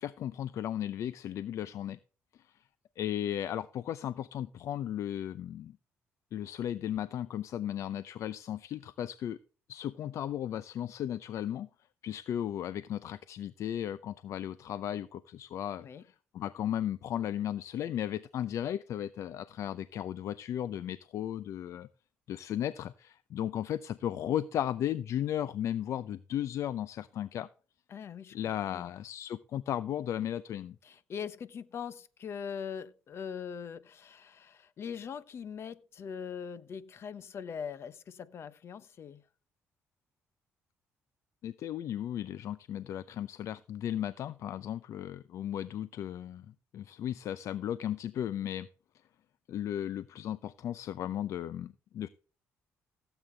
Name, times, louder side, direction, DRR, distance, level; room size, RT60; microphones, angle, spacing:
voice 1, 0.0-2.0 3.0-5.8 6.3-9.4 9.7-11.7 12.0-21.9 22.3-27.5 28.3-30.8 41.4-48.7 49.5-52.1, left 11 dB, 65° left, 0.6 m, -35 dB
voice 2, 27.9-28.4 28.7-28.9 30.8-39.2, left 7 dB, 50° left, 1.1 m, -41 dB
16.5 x 8.2 x 3.4 m
cardioid pair, 105°, 5 cm